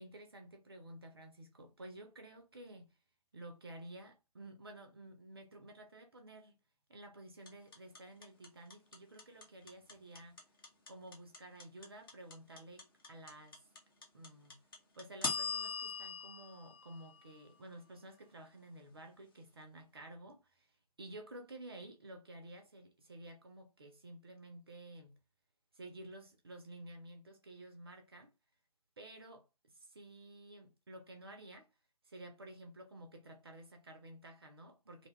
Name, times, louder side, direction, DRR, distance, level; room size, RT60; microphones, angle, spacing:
voice 1, 0.0-3.0 3.3-6.6 6.9-10.4 10.9-13.7 14.1-14.7 14.9-25.2 25.7-28.3 29.0-31.7 32.0-35.1, right 1 dB, 35° right, 0.5 m, -52 dB
sound 1, 7.5-17.6, left 5 dB, 35° left, 0.8 m, -42 dB
2.6 x 2.2 x 2.8 m
figure-of-eight pair, 145°, 21 cm